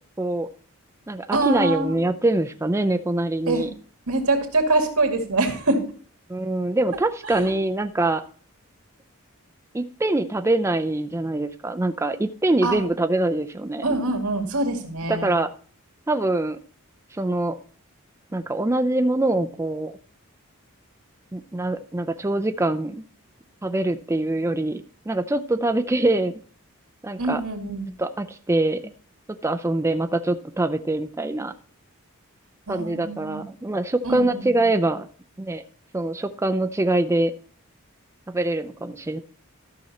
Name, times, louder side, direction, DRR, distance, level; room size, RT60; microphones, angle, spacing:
voice 1, 0.2-0.5 1.1-3.7 6.3-8.2 9.7-13.9 15.1-15.5 16.1-16.6 17.1-17.6 18.3-19.9 21.3-23.0 23.6-26.4 27.0-27.4 28.0-28.9 29.4-31.5 32.7-35.0 35.4-35.6 35.9-37.3 38.3-39.2, right 2 dB, 15° right, 8 dB, 0.4 m, -24 dB
voice 2, 1.3-2.0 3.5-3.7 4.1-5.8 7.2-7.6 12.6-12.8 13.8-15.3 27.2-27.9 32.7-33.4 34.0-34.5, right 2 dB, 90° right, 4 dB, 2.1 m, -24 dB
13.5 x 6.2 x 4.2 m, 0.44 s
head